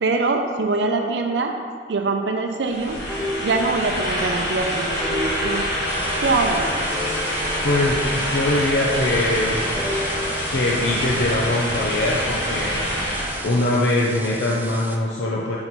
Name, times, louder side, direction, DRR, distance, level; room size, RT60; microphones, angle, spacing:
voice 1, 0.0-1.6 1.9-3.0 3.4-5.6 6.2-6.7, right 3 dB, 80° right, 4 dB, 0.5 m, -23 dB
sound 1, 2.6-13.5, equal, 70° left, 1.7 m, -26 dB
sound 2, 3.1-4.3 4.5-4.6 5.0-6.5 6.9-8.3 8.8-10.6, left 1 dB, 15° left, 1.7 m, -32 dB
sound 3, 5.9-15.0, right 2 dB, 10° right, 0.4 m, -36 dB
voice 2, 7.6-9.6 10.5-12.8 13.4-15.6, left 1 dB, 90° left, -4 dB, 0.6 m, -22 dB
7.7 x 4.4 x 4.0 m, 2.1 s
head